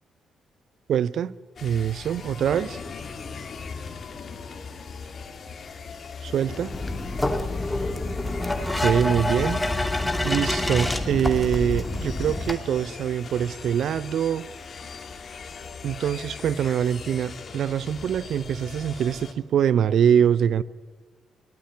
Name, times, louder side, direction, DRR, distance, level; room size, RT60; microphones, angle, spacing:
voice 1, 0.9-1.3 1.6-2.8 6.2-6.7 8.8-9.6 10.2-14.5 15.8-20.6, right 9 dB, 65° right, 0.7 m, -24 dB
sound 1, 1.6-19.3, left 5 dB, 50° left, 2.4 m, -39 dB
sound 2, 6.7-12.5, left 2 dB, 15° left, 2.5 m, -27 dB
22.0 x 16.5 x 9.6 m
hypercardioid pair, 40°, 0 cm